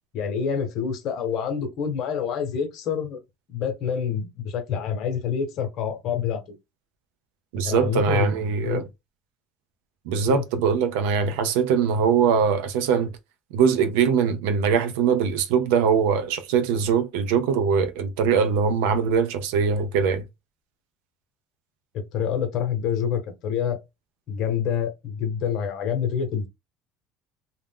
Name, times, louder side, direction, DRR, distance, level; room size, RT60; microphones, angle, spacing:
voice 1, 0.1-3.2 3.5-6.4 7.6-8.3 8.7-8.9 10.3-10.4 21.9-23.8 24.3-26.5, left 7 dB, 60° left, 0.9 m, -27 dB
voice 2, 7.5-8.8 10.1-13.1 13.5-20.2, right 6 dB, 85° right, 0.5 m, -22 dB
2.4 x 2.1 x 3.4 m
supercardioid pair, 105°, 0 cm